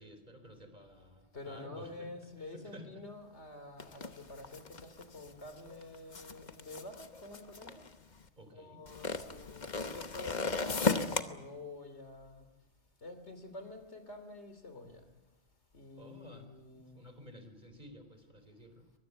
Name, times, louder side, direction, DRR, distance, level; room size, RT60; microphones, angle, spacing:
voice 1, 0.0-2.1 2.4-2.9 8.4-8.8 16.0-18.9, equal, 40° right, 8 dB, 3.9 m, -53 dB
voice 2, 1.3-7.9 8.5-12.5 13.0-15.1 15.7-17.1, left 2 dB, 80° left, 8 dB, 3.2 m, -48 dB
sound 1, 3.8-8.2 8.9-11.2, left 4 dB, 40° left, 1.2 m, -35 dB
23.5 x 22.0 x 8.2 m, 1.1 s
omnidirectional pair, 1.1 m